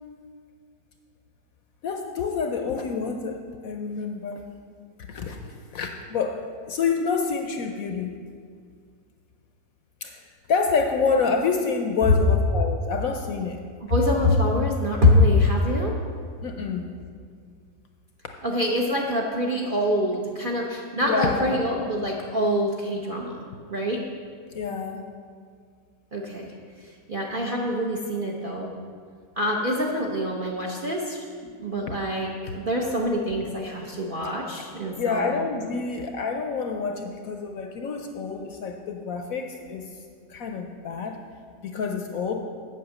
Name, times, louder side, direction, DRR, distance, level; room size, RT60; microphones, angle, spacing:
voice 1, 1.8-4.4 5.0-5.4 5.7-6.4 6.7-8.1 10.0-10.2 10.5-13.6 16.4-16.9 21.0-21.6 24.5-25.0 35.0-39.9 40.3-41.2 41.6-42.4, left 5 dB, 65° left, 4 dB, 0.9 m, -27 dB
voice 2, 13.9-16.0 18.4-23.4 23.7-24.0 26.1-26.5 27.1-28.7 29.4-31.2 31.5-35.3, left 1 dB, 45° right, -2 dB, 0.7 m, -24 dB
7.9 x 5.9 x 7.5 m, 2.1 s
omnidirectional pair, 1.8 m